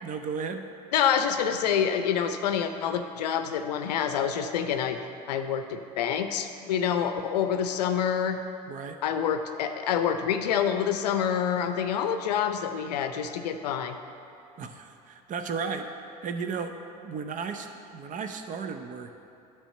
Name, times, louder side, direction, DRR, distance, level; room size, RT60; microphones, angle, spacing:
voice 1, 0.0-0.7 8.7-9.0 14.6-16.8 17.0-17.7 17.9-19.1, right 5 dB, 40° right, 7 dB, 0.7 m, -34 dB
voice 2, 0.9-5.0 5.3-8.4 9.0-14.0, left 8 dB, 80° left, 8 dB, 0.6 m, -27 dB
9.9 x 3.5 x 6.6 m, 2.7 s
hypercardioid pair, 75°, 21 cm